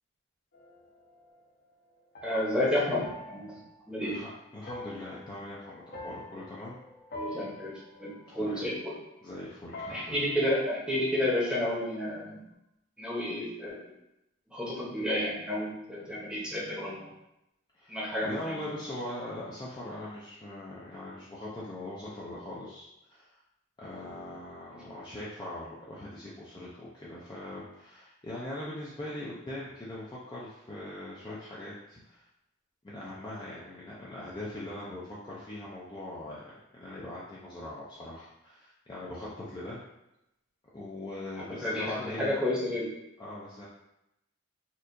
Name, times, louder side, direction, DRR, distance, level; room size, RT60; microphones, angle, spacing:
sound 1, 0.5-9.4 9.7-11.8, left 1 dB, 45° left, 0.7 m, -47 dB
voice 1, 2.2-3.6 3.9-4.2 7.1-7.7 8.0-9.0 9.9-12.4 13.0-13.8 14.5-17.1 17.9-18.6 24.7-24.8 41.6-42.9, left 1 dB, 5° right, -6 dB, 0.8 m, -31 dB
voice 2, 4.0-6.8 8.3-8.7 9.2-10.2 17.7-17.9 18.2-23.4 23.8-32.2 32.8-39.8 40.7-42.4 43.2-43.7, left 1 dB, 20° left, -7 dB, 0.4 m, -41 dB
4.3 x 2.4 x 2.5 m, 0.87 s
head